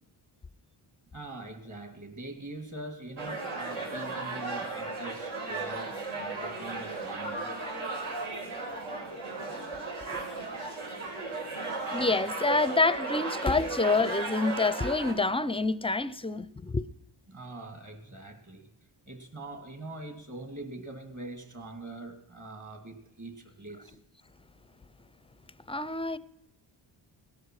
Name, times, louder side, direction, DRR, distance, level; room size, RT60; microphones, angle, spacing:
voice 1, 1.1-7.5 17.3-18.7 19.1-24.0, right 2 dB, 35° right, 2.9 m, -43 dB
sound 1, 3.2-15.1, right 3 dB, 80° right, 4.6 m, -35 dB
voice 2, 11.9-16.9 25.7-26.2, left 3 dB, 10° left, 0.5 m, -27 dB
18.5 x 12.5 x 4.8 m
cardioid pair, 105°, 48 cm